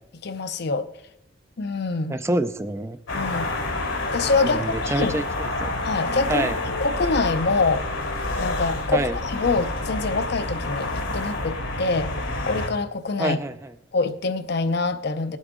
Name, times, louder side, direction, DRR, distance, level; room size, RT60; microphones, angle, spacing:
voice 1, 0.2-0.9 1.6-2.2 3.1-3.5 4.1-5.1 5.8-7.9 8.4-10.9 11.1-12.1 12.5-13.4 13.9-15.4, left 3 dB, 55° left, 10 dB, 0.6 m, -25 dB
voice 2, 2.1-3.0 4.4-5.7 6.3-6.6 8.9-9.2 13.2-13.7, right 2 dB, 15° right, 10 dB, 0.4 m, -27 dB
sound 1, 3.1-12.7, left 2 dB, 80° left, 2.2 m, -28 dB
18.5 x 8.2 x 3.7 m, 0.83 s
head